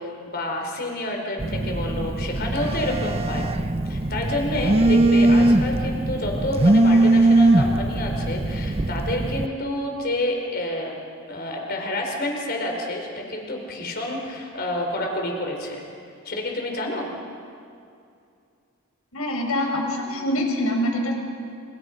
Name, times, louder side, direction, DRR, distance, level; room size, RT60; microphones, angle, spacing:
voice 1, 0.0-3.5 3.9-11.0 11.3-15.8 16.2-17.1, left 1 dB, 45° left, 2 dB, 4.5 m, -29 dB
Telephone, 1.4-9.5, right 2 dB, 30° right, 0.6 m, -20 dB
voice 2, 19.1-21.1, left 1 dB, 85° left, 2 dB, 5.3 m, -24 dB
28.5 x 27.5 x 5.3 m, 2.5 s
head